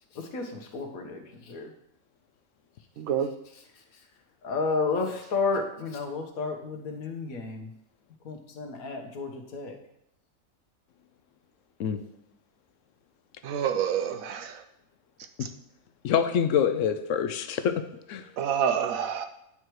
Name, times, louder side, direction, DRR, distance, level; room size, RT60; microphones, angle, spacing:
voice 1, 0.1-1.7 3.5-4.1 4.4-7.7 8.2-9.8, left 4 dB, 90° left, 4 dB, 1.5 m, -32 dB
voice 2, 3.0-3.3 13.4-14.6 15.4-15.5 18.4-19.3, right 8 dB, 85° right, 7 dB, 1.1 m, -28 dB
voice 3, 16.0-18.3, left 8 dB, 70° left, 10 dB, 0.9 m, -26 dB
8.9 x 4.7 x 4.6 m, 0.79 s
omnidirectional pair, 1.4 m